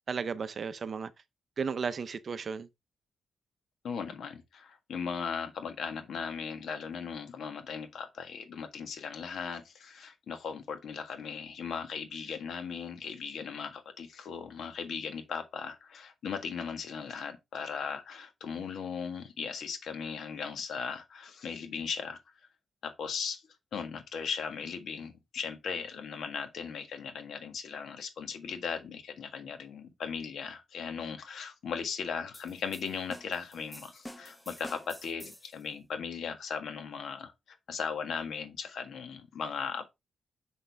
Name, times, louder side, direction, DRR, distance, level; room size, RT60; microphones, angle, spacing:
voice 1, 0.1-1.1 1.6-2.7, right 5 dB, 45° right, 0.6 m, -34 dB
voice 2, 3.8-22.2 22.8-23.4 23.7-37.3 37.7-39.9, left 6 dB, 70° left, 1.6 m, -38 dB
sound 1, 32.3-35.6, equal, 5° left, 0.8 m, -48 dB
6.6 x 6.3 x 3.4 m
cardioid pair, 120°, 0 cm